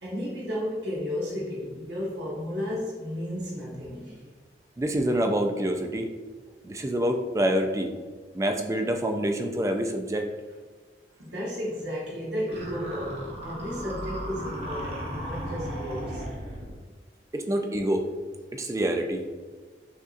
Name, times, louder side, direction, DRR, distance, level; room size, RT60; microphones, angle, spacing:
voice 1, 0.0-4.3 11.2-16.2 17.4-17.5, equal, 80° right, -5 dB, 1.1 m, -33 dB
voice 2, 4.8-6.1 6.6-7.9 8.3-10.3 17.3-18.1 18.5-19.3, right 1 dB, 20° right, 5 dB, 0.3 m, -26 dB
sound 1, 12.5-16.8, equal, 35° right, 0.8 m, -36 dB
6.1 x 2.7 x 2.5 m, 1.4 s
head